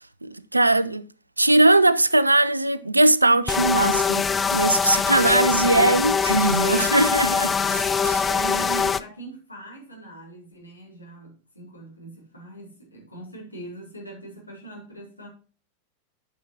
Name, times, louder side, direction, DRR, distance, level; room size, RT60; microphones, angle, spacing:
voice 1, 0.2-1.1 1.4-8.3, right 2 dB, 85° right, 0.4 m, -20 dB
sound 1, 3.5-9.0, left 6 dB, 15° left, 0.4 m, -23 dB
voice 2, 8.2-15.3, right 2 dB, 85° left, 3.5 m, -40 dB
11.5 x 6.1 x 2.9 m
figure-of-eight pair, 90°, 0 cm